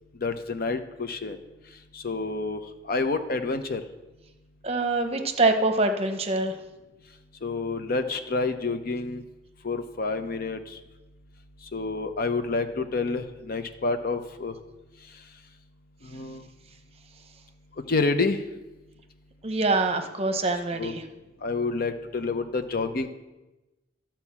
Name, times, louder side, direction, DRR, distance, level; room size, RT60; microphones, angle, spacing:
voice 1, 0.2-1.4 1.9-3.8 7.4-9.2 9.6-10.8 11.7-14.5 16.0-16.5 17.9-18.4 20.8-20.9 21.4-23.1, left 3 dB, 55° left, 8 dB, 0.7 m, -28 dB
voice 2, 4.6-6.5 19.4-21.0, right 2 dB, 35° right, 6 dB, 0.8 m, -24 dB
12.5 x 4.5 x 7.2 m, 1.1 s
head